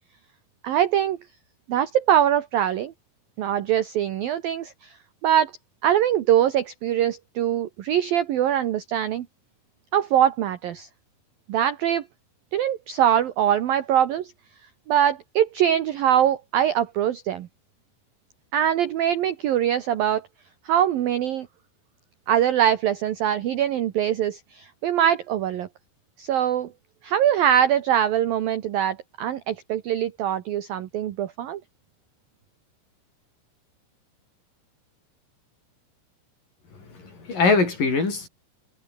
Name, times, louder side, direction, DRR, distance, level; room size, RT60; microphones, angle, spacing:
voice 1, 0.6-1.2 1.7-2.9 3.4-4.9 5.2-5.5 5.8-9.3 9.9-10.9 11.5-12.0 12.5-14.3 14.9-17.5 18.5-20.3 20.7-21.5 22.3-25.7 26.2-26.7 27.0-31.6, right 10 dB, 70° right, 2.3 m, -23 dB
voice 2, 36.8-38.3, left 4 dB, 40° left, 8.2 m, -22 dB
omnidirectional pair, 5.8 m